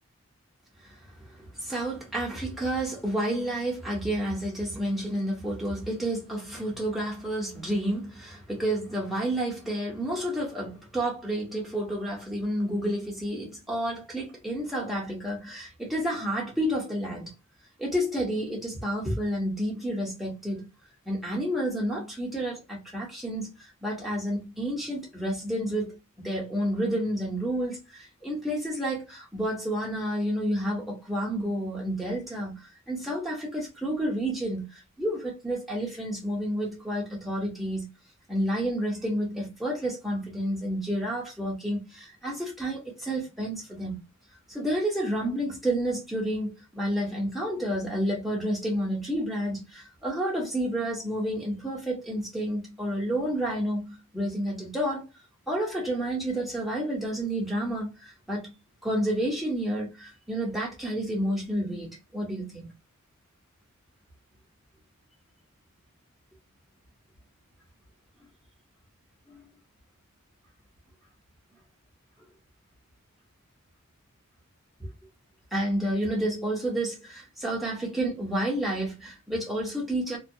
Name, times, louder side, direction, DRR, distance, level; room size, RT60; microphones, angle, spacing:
voice 1, 0.8-17.3 17.8-20.7 21.1-37.9 38.3-44.0 44.5-55.1 55.5-58.5 58.8-62.7 69.3-69.5 74.8-74.9 75.5-80.2, right 1 dB, ahead, 0.9 m, -30 dB
2.4 x 2.1 x 2.6 m
head